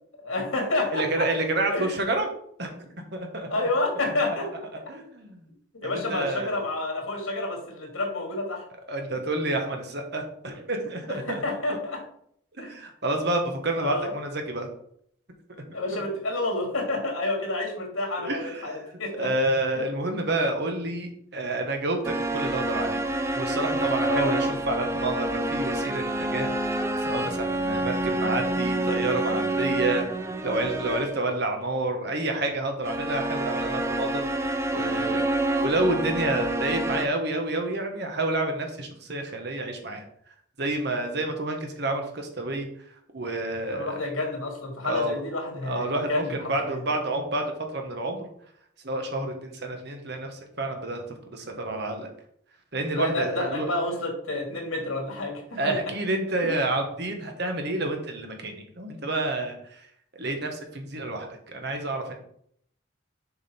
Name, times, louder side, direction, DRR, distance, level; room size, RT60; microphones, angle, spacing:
voice 1, 0.2-1.2 1.7-2.0 3.5-4.7 5.8-8.6 9.1-9.2 11.1-12.0 12.6-12.8 13.8-14.1 15.7-19.3 19.7-19.8 24.1-24.3 43.7-46.3 46.6-46.8 52.9-55.7 56.4-56.5, left 2 dB, 85° left, 1 dB, 2.4 m, -29 dB
voice 2, 0.9-2.3 2.6-3.5 4.9-5.5 5.8-6.6 8.9-11.4 12.6-14.7 15.7-15.8 18.2-18.8 19.2-23.0 23.4-26.5 27.0-30.0 30.4-34.4 34.7-35.2 35.6-40.0 40.6-42.7 43.1-43.9 44.8-45.2 45.7-47.4 47.7-48.3 48.8-51.0 51.3-52.1 52.7-53.7 55.6-59.9 60.1-62.1, right 2 dB, 55° right, 4 dB, 1.3 m, -29 dB
sound 1, 22.0-31.3 32.8-37.1, right 1 dB, 15° right, 0.4 m, -28 dB
6.9 x 5.0 x 4.4 m, 0.67 s
head